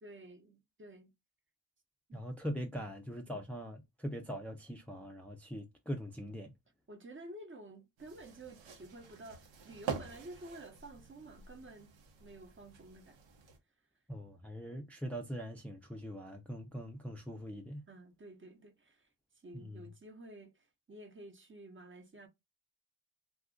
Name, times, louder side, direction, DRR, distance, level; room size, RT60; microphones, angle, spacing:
voice 1, 0.0-1.1 2.1-2.3 2.7-2.9 6.9-11.9 12.2-13.2 17.9-19.1 19.3-22.3, right 1 dB, 25° right, 0.9 m, -52 dB
voice 2, 2.1-6.5 14.1-17.8 19.5-19.8, equal, 5° left, 0.6 m, -42 dB
sound 1, 8.0-13.6, right 6 dB, 75° right, 1.0 m, -46 dB
2.4 x 2.3 x 3.7 m
cardioid pair, 60°, 44 cm